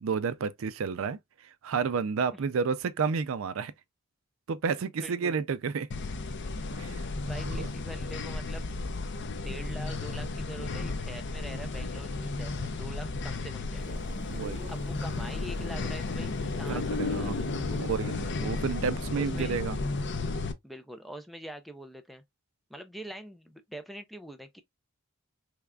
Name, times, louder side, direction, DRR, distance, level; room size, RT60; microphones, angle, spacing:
voice 1, 0.0-3.7 4.5-5.9 6.7-7.0 7.4-7.7 14.3-14.6 16.7-19.8, right 5 dB, 70° right, 0.4 m, -31 dB
voice 2, 5.0-5.4 7.2-8.7 9.4-14.0 14.7-16.3 16.6-18.1 19.1-19.5 20.6-22.2 22.7-24.6, equal, ahead, 0.4 m, -44 dB
sound 1, 5.9-20.5, left 3 dB, 55° left, 0.6 m, -33 dB
sound 2, 13.7-19.0, right 2 dB, 20° right, 0.8 m, -50 dB
3.6 x 3.3 x 2.3 m
head